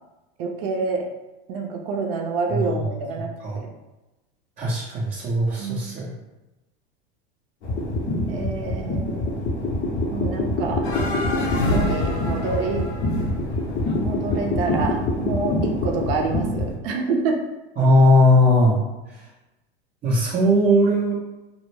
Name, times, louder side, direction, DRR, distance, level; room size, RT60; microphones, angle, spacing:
voice 1, 0.4-1.0 1.5-3.3 3.6-3.7 5.6-5.8 8.3-9.4 10.1-10.8 11.5-12.9 14.0-17.4, right 4 dB, 70° right, 2 dB, 0.6 m, -27 dB
voice 2, 2.5-2.8 3.4-3.6 4.6-6.2 17.8-18.8 20.0-21.2, left 1 dB, 25° right, -7 dB, 0.5 m, -18 dB
sound 1, 7.6-16.7, left 1 dB, 40° left, 0.7 m, -26 dB
sound 2, 10.8-15.1, left 1 dB, 85° left, 0.6 m, -28 dB
2.1 x 2.0 x 3.1 m, 1.0 s
hypercardioid pair, 100°, 31 cm